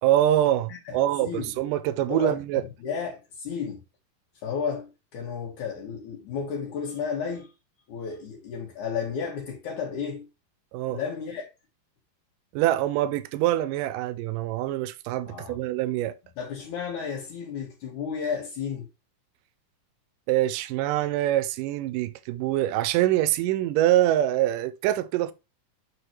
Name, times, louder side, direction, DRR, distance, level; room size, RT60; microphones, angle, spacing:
voice 1, 0.0-2.6 10.7-11.0 12.5-16.2 20.3-25.3, right 13 dB, 90° right, 2.3 m, -24 dB
voice 2, 0.7-1.5 2.0-3.8 4.4-7.5 7.9-10.3 10.9-11.5 15.3-15.6 16.4-18.9, left 6 dB, 70° left, 2.9 m, -33 dB
7.7 x 6.0 x 3.2 m
omnidirectional pair, 3.7 m